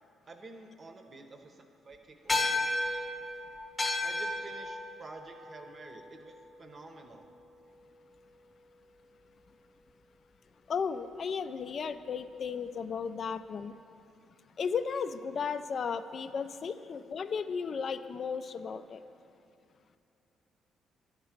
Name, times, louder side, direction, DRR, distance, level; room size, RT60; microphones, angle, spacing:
voice 1, 0.3-2.7 4.0-7.3, right 3 dB, 40° right, 5 dB, 0.8 m, -49 dB
sound 1, 2.3-7.0, left 2 dB, 20° left, 0.9 m, -34 dB
voice 2, 10.7-13.7 14.6-19.0, left 6 dB, 50° left, 11 dB, 0.3 m, -34 dB
11.0 x 3.7 x 5.8 m, 2.7 s
cardioid pair, 90°, 0 cm